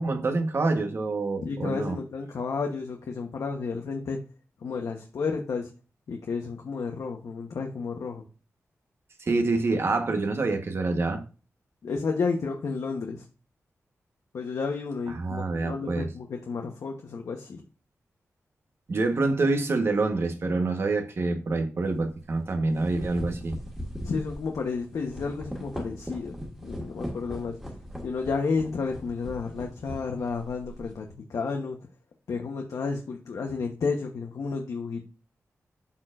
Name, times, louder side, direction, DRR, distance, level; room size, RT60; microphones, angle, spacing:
voice 1, 0.0-2.0 9.2-11.2 15.1-16.1 18.9-23.5, right 3 dB, 50° right, 1.2 m, -26 dB
voice 2, 1.4-4.2 4.6-5.7 6.1-8.2 11.8-13.2 14.3-17.6 24.0-27.6 28.0-31.8 32.3-35.0, left 4 dB, 85° left, 1.0 m, -31 dB
sound 1, 21.9-22.0 22.6-31.0, equal, 5° right, 1.8 m, -39 dB
13.0 x 4.3 x 2.5 m
wide cardioid pair, 145°, 5 cm